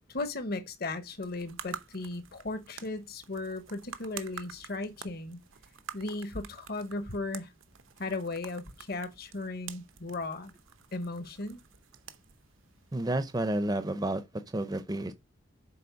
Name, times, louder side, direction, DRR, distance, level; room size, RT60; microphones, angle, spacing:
voice 1, 0.1-5.4 5.9-7.5 8.0-10.5 10.9-11.6, left 2 dB, 50° left, 1.0 m, -36 dB
sound 1, 1.1-13.6, right 8 dB, 85° right, 0.8 m, -49 dB
voice 2, 12.9-14.2 14.5-15.1, right 1 dB, 20° right, 0.5 m, -30 dB
6.9 x 4.2 x 5.1 m
head